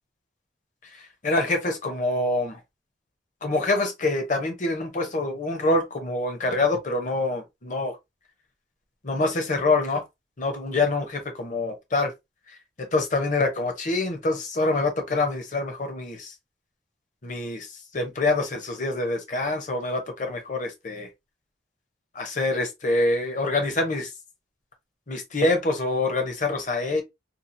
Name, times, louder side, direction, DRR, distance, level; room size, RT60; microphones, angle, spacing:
voice 1, 0.9-2.6 3.4-8.0 9.0-10.0 10.4-12.1 12.8-16.3 17.2-17.7 17.9-21.1 22.1-24.1 25.1-27.0, left 2 dB, 40° left, 0.7 m, -25 dB
2.8 x 2.3 x 2.5 m
head